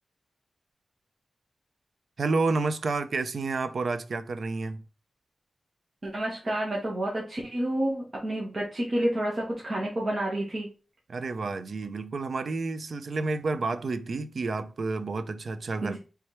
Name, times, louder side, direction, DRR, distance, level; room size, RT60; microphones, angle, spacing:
voice 1, 2.2-4.8 11.1-16.0, right 3 dB, 65° right, 0.4 m, -30 dB
voice 2, 6.0-10.7 15.8-16.0, right 1 dB, 40° right, 1.4 m, -29 dB
4.3 x 3.4 x 3.2 m
wide cardioid pair, 125°, 0 cm